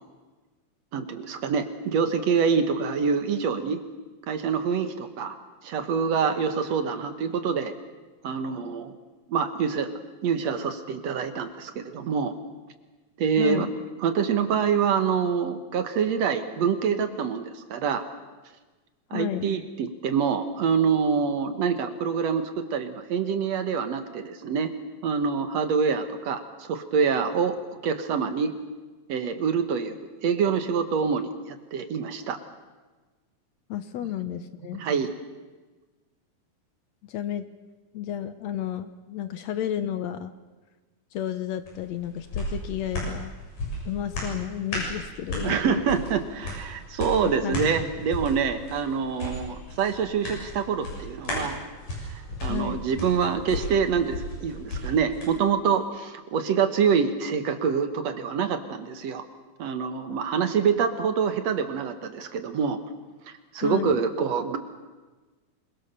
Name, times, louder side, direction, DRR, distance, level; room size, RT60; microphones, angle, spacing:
voice 1, 0.9-3.8 4.3-5.4 5.6-7.7 8.2-8.9 9.3-9.9 10.2-12.3 13.2-13.7 14.0-18.0 19.1-24.7 25.0-27.6 27.8-28.5 29.1-30.0 30.2-32.4 34.8-35.1 45.4-51.6 52.0-59.2 59.6-62.8 63.5-64.6, right 6 dB, 65° right, 9 dB, 2.4 m, -26 dB
voice 2, 13.4-13.7 19.1-19.6 33.7-34.8 37.0-37.5 37.9-40.3 41.1-43.3 43.9-45.8 47.2-47.6 52.5-52.9 63.6-64.0, left 10 dB, 70° left, 11 dB, 2.0 m, -32 dB
sound 1, 41.6-55.3 55.7-55.8, left 1 dB, 90° left, 8.5 m, -35 dB
26.5 x 22.0 x 6.9 m, 1.3 s
omnidirectional pair, 3.5 m